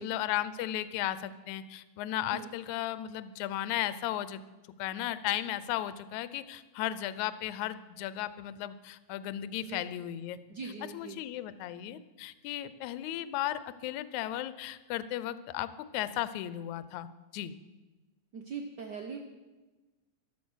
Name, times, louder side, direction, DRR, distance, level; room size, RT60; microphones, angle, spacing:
voice 1, 0.0-4.4 4.8-10.4 10.9-17.1 17.3-17.5, left 13 dB, 80° left, 15 dB, 2.0 m, -35 dB
voice 2, 10.5-11.2 18.3-19.2, right 5 dB, 70° right, 3 dB, 0.9 m, -41 dB
14.5 x 12.0 x 6.3 m, 1.2 s
omnidirectional pair, 3.4 m